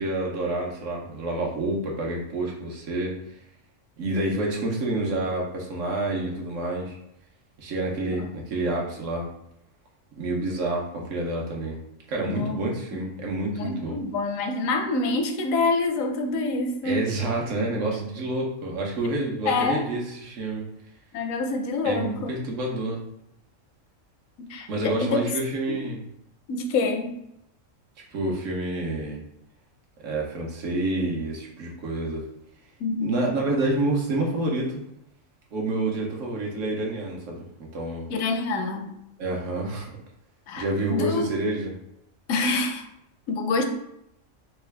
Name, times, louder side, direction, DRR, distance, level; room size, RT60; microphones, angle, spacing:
voice 1, 0.0-3.2 4.0-7.0 7.6-9.3 10.2-11.8 12.1-14.0 16.8-20.7 21.8-23.0 24.7-26.0 28.1-29.2 30.0-32.2 33.0-34.8 35.5-37.4 37.7-38.1 39.2-39.9 40.6-41.7, right 2 dB, 70° right, -1 dB, 1.2 m, -28 dB
voice 2, 12.2-12.6 13.5-17.0 19.5-19.9 21.1-22.3 24.4-25.2 25.7-25.8 26.5-27.2 32.8-33.3 38.1-38.9 40.5-41.3 42.3-42.8 43.3-43.6, left 3 dB, 85° left, 5 dB, 1.0 m, -26 dB
3.7 x 2.3 x 3.3 m, 0.80 s
omnidirectional pair, 1.4 m